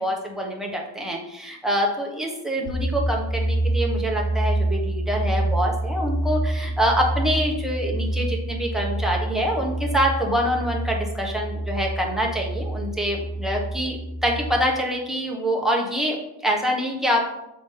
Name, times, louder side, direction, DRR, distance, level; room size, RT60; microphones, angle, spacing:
voice 1, 0.0-17.3, equal, ahead, -2 dB, 1.3 m, -25 dB
sound 1, 2.6-14.5, right 1 dB, 75° right, 1.1 m, -27 dB
7.8 x 3.7 x 5.6 m, 0.89 s
wide cardioid pair, 150°, 45 cm